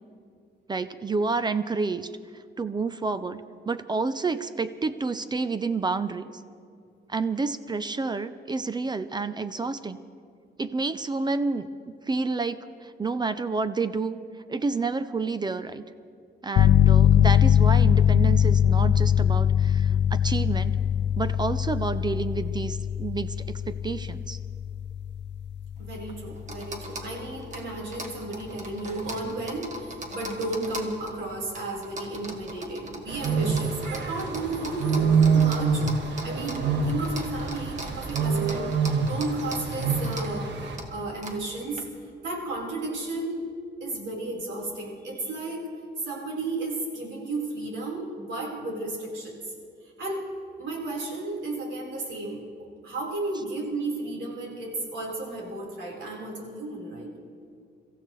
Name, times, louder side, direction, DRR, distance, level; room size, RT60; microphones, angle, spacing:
voice 1, 0.7-2.1 2.6-3.4 3.7-6.3 7.1-10.0 10.6-11.7 12.1-14.2 14.5-15.8 16.4-20.8 21.2-24.4, right 4 dB, 25° right, 12 dB, 0.5 m, -29 dB
sound 1, 16.6-27.1, left 9 dB, 70° left, 0.4 m, -22 dB
sound 2, 25.8-41.8, right 1 dB, 40° right, 1.6 m, -41 dB
voice 2, 25.9-35.8 36.2-38.7 39.1-40.6 40.9-41.8 42.2-43.4 43.8-45.6 46.0-49.3 50.0-50.3 50.6-52.4 52.8-57.1, right 2 dB, 85° right, -3 dB, 4.1 m, -33 dB
sound 3, 33.1-40.8, right 5 dB, 70° right, 1.6 m, -26 dB
30.0 x 15.0 x 3.1 m, 2.3 s
wide cardioid pair, 145°, 19 cm